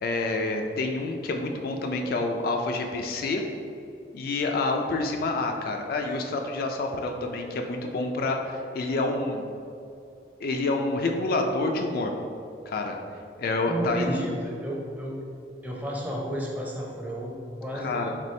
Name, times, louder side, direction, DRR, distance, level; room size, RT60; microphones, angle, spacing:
voice 1, 0.0-3.4 4.1-9.4 10.4-12.1 12.7-13.0 13.4-14.3 17.7-18.1, left 2 dB, 55° left, 3 dB, 0.3 m, -28 dB
voice 2, 13.7-15.1 15.6-18.1, equal, 10° right, -3 dB, 0.5 m, -32 dB
4.3 x 3.1 x 3.2 m, 2.5 s
head